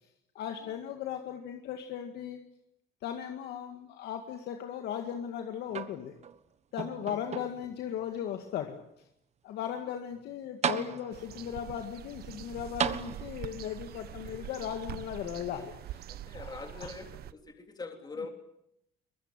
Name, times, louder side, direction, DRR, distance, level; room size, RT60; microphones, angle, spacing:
voice 1, 0.4-2.4 3.0-6.1 6.7-8.8 9.4-16.1 16.3-16.9, left 9 dB, 75° left, 5 dB, 2.1 m, -37 dB
sound 1, 5.7-6.4 6.8-7.8 8.5-8.6 10.2-10.3 10.6-11.4 12.8-13.6 14.7-14.8, right 7 dB, 40° right, 1.4 m, -35 dB
voice 2, 7.0-7.6 9.8-9.9 14.1-14.4 16.1-18.3, left 3 dB, 25° left, 4 dB, 3.6 m, -44 dB
sound 2, 11.1-17.3, right 12 dB, 65° right, 1.0 m, -44 dB
23.0 x 21.0 x 9.1 m, 0.79 s
cardioid pair, 110°, 17 cm